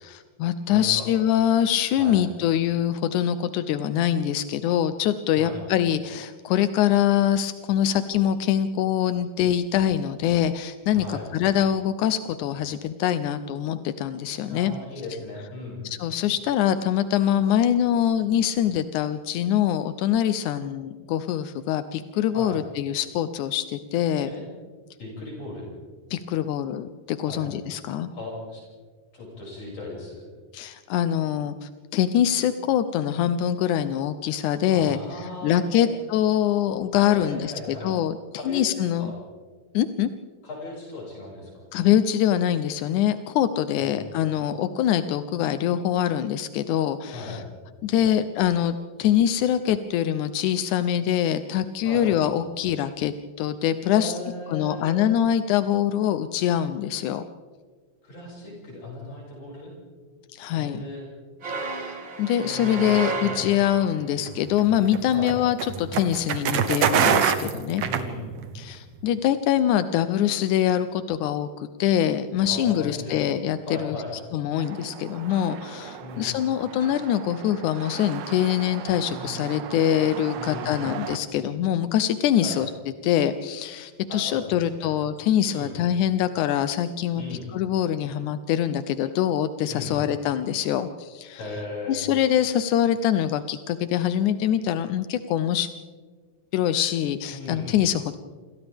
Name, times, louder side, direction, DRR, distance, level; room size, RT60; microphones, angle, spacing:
voice 1, 0.0-14.7 15.8-24.3 26.1-28.1 30.5-35.0 35.4-38.2 38.5-39.1 39.7-40.1 41.7-47.4 47.8-54.2 54.5-57.2 60.3-60.8 61.7-67.8 68.5-74.0 74.3-82.7 83.0-87.2 87.5-91.4 91.9-95.7 96.5-98.2, left 10 dB, 80° left, 10 dB, 1.8 m, -24 dB
voice 2, 0.7-1.1 2.0-2.2 5.3-5.6 10.9-11.3 14.5-15.8 22.3-22.6 24.3-24.4 25.0-25.7 27.3-27.5 28.1-28.6 29.1-30.2 34.7-35.9 36.9-37.9 38.4-39.2 40.4-41.7 43.8-44.1 47.1-47.4 51.8-52.1 53.9-55.0 58.0-59.7 60.6-61.1 62.3-63.5 65.1-65.4 67.8-68.3 72.5-73.2 73.7-74.1 76.0-76.3 80.4-80.9 82.4-82.6 84.1-84.9 85.5-85.8 87.2-87.5 89.7-90.0 91.3-92.1 97.3-97.7, left 2 dB, 55° left, -4 dB, 7.8 m, -37 dB
Dramatic Orchestral Crescendo, 61.4-64.0, right 4 dB, 35° right, 2.5 m, -32 dB
sound 1, 64.2-68.6, right 7 dB, 60° right, 2.0 m, -24 dB
sound 2, 74.6-81.2, right 9 dB, 90° right, 3.0 m, -38 dB
28.5 x 27.5 x 3.5 m, 1.5 s
omnidirectional pair, 4.2 m